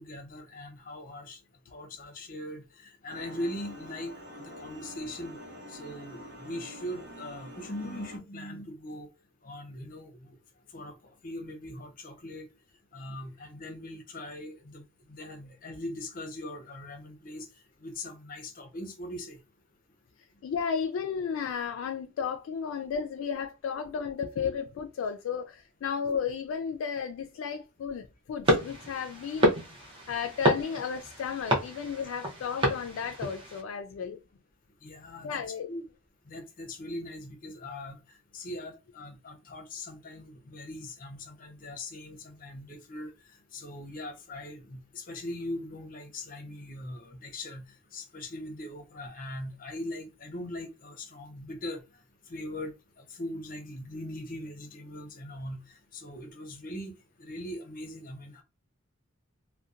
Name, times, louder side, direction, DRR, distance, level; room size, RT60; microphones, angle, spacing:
voice 1, 0.0-1.4 1.7-4.1 4.6-5.4 5.7-9.1 9.4-10.3 10.7-10.9 11.2-12.4 12.9-14.8 15.1-17.5 17.8-19.4 34.8-35.4 35.7-35.8 36.3-38.0 38.3-43.1 43.5-47.6 47.9-51.8 52.3-52.7 53.1-55.6 55.9-56.9 57.2-58.4, left 1 dB, 45° left, 0.6 m, -40 dB
sound 1, 3.1-8.2, equal, 60° right, 0.9 m, -46 dB
voice 2, 20.4-29.6 30.1-34.2 35.2-35.7, left 6 dB, 85° left, 0.3 m, -33 dB
sound 2, 28.4-33.6, equal, 25° right, 0.7 m, -29 dB
2.7 x 2.1 x 2.4 m
head